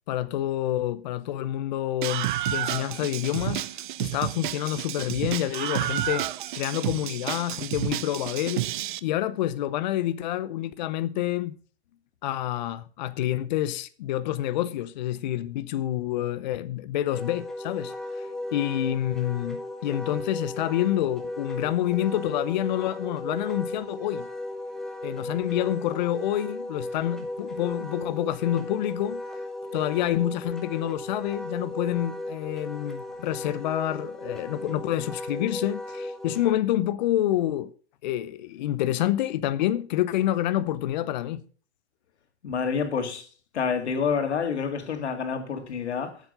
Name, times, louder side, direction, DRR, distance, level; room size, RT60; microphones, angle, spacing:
voice 1, 0.1-3.6 4.0-8.6 9.0-11.6 12.2-24.3 25.0-29.2 29.7-37.7 38.0-41.4, left 13 dB, 45° left, 0.7 m, -28 dB
Screaming, 2.0-9.0, right 13 dB, 50° right, 0.6 m, -30 dB
Wind instrument woodwind instrument, 17.1-36.5, left 1 dB, ahead, 1.0 m, -36 dB
voice 2, 42.4-43.3 43.5-46.2, left 6 dB, 90° left, 2.3 m, -28 dB
9.3 x 7.4 x 6.5 m
hypercardioid pair, 160°, 33 cm